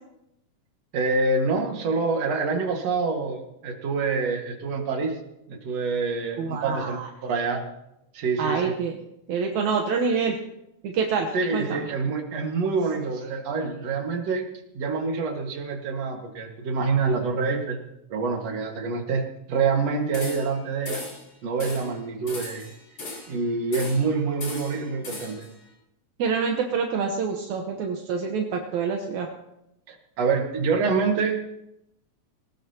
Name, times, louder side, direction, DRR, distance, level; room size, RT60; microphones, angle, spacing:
voice 1, 0.9-5.2 5.5-7.6 8.1-8.7 11.3-14.4 14.7-17.8 18.1-21.0 21.4-22.7 23.3-25.4 29.9-31.4, right 4 dB, 60° right, 2 dB, 2.8 m, -26 dB
voice 2, 6.4-7.1 8.4-8.9 9.3-10.4 10.8-11.8 26.2-29.3, right 5 dB, 75° right, 2 dB, 2.4 m, -26 dB
sound 1, 20.1-20.6 20.9-21.3 21.6-21.9 22.3-23.4 23.7-24.1 24.4-25.5, left 3 dB, 50° left, 4.5 m, -37 dB
20.0 x 18.5 x 2.9 m, 0.85 s
omnidirectional pair, 3.4 m